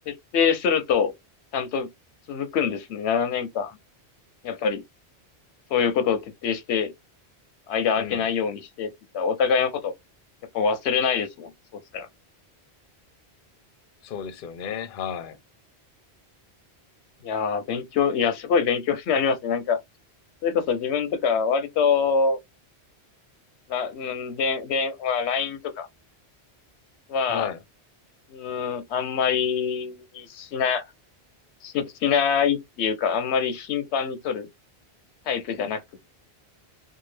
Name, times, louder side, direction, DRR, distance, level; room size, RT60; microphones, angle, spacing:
voice 1, 0.1-1.1 1.5-1.9 2.3-3.7 4.4-4.8 5.7-6.9 7.7-9.9 10.5-12.1 17.2-19.8 20.4-22.4 23.7-25.9 27.1-27.5 28.3-30.8 31.6-34.5 35.3-35.8, left 6 dB, 90° left, 0.9 m, -25 dB
voice 2, 7.9-8.3 14.0-15.4 27.3-27.6, left 8 dB, 60° left, 0.7 m, -33 dB
2.7 x 2.4 x 3.1 m
omnidirectional pair, 1.1 m